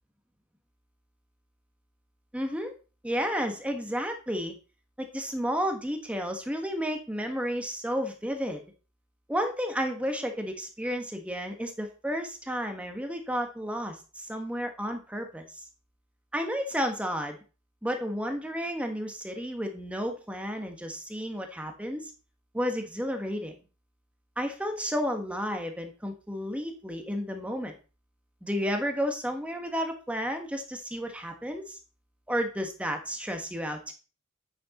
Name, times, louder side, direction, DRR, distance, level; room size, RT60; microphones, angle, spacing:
voice 1, 2.3-2.7 3.0-4.5 5.0-8.6 9.3-15.6 16.3-17.4 17.8-22.1 22.5-23.5 24.4-27.7 28.4-31.8 32.3-33.9, equal, 5° right, 5 dB, 1.3 m, -32 dB
8.7 x 6.3 x 4.2 m, 0.34 s
head